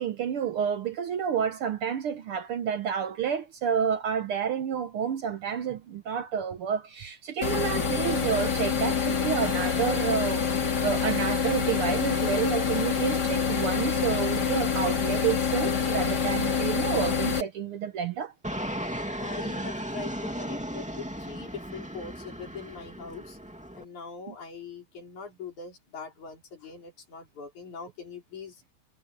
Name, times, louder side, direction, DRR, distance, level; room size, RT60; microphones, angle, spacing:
voice 1, 0.0-18.3 24.3-24.4, right 8 dB, 70° right, 1.4 m, -30 dB
sound 1, 7.4-17.4, left 6 dB, 35° left, 2.6 m, -26 dB
Fixed-wing aircraft airplane, 18.4-23.8, equal, 5° right, 1.9 m, -35 dB
voice 2, 19.2-23.4 23.7-28.6, left 5 dB, 75° left, 6.0 m, -42 dB
omnidirectional pair, 3.4 m